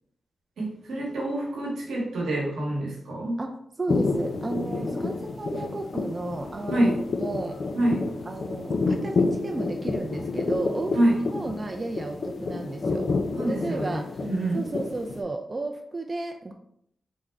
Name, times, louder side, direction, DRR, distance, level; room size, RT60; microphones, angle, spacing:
voice 1, 0.6-3.4 6.7-7.0 7.7-8.0 10.9-11.2 13.4-14.6, right 1 dB, 90° right, -4 dB, 1.0 m, -26 dB
voice 2, 3.4-7.6 8.3-13.1 13.5-14.3 14.5-16.5, right 2 dB, 35° right, 4 dB, 0.4 m, -33 dB
sound 1, 3.9-15.2, left 3 dB, 65° left, 0.4 m, -29 dB
3.6 x 2.0 x 3.3 m, 0.70 s
cardioid pair, 50°, 0 cm